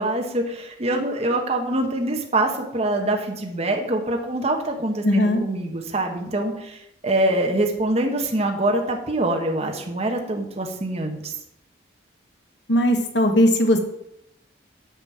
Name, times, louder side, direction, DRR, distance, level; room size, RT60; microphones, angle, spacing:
voice 1, 0.0-11.3, right 1 dB, 35° right, 2 dB, 1.2 m, -24 dB
voice 2, 5.0-5.4 12.7-13.8, left 1 dB, 65° left, 5 dB, 1.4 m, -18 dB
9.0 x 5.4 x 7.5 m, 0.80 s
head